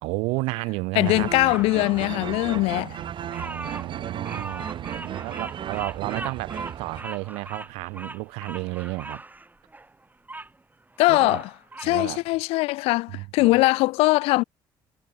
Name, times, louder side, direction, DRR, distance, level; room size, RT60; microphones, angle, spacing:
voice 1, 0.0-1.3 2.7-9.2 11.1-11.4 11.8-12.2 13.1-13.6, right 25 dB, 85° right, 1.9 m, -32 dB
voice 2, 1.0-3.0 11.0-11.5 11.8-14.4, left 21 dB, 80° left, 0.7 m, -21 dB
sound 1, 1.0-7.0, right 9 dB, 55° right, 1.3 m, -35 dB
Bird vocalization bird call bird song, 1.5-10.5 10.9-12.0, right 2 dB, 15° right, 2.8 m, -40 dB
supercardioid pair, 65°, 10 cm